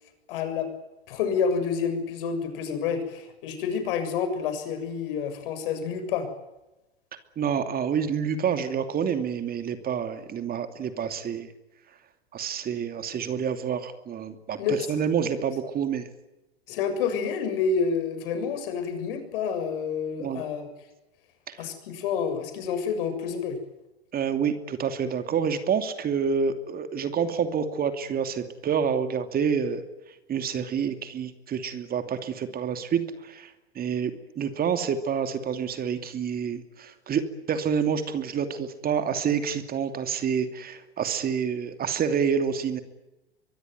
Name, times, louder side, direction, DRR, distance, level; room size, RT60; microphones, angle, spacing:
voice 1, 0.3-0.7 1.1-6.3 14.6-15.0 16.7-20.7 21.6-23.6, left 6 dB, 60° left, 8 dB, 7.1 m, -28 dB
voice 2, 7.4-11.5 12.3-16.1 20.2-20.4 21.5-21.7 24.1-29.8 30.3-33.5 33.8-34.1 34.4-42.8, right 7 dB, 30° right, 8 dB, 2.7 m, -28 dB
24.0 x 22.5 x 9.5 m, 0.99 s
hypercardioid pair, 95°, 31 cm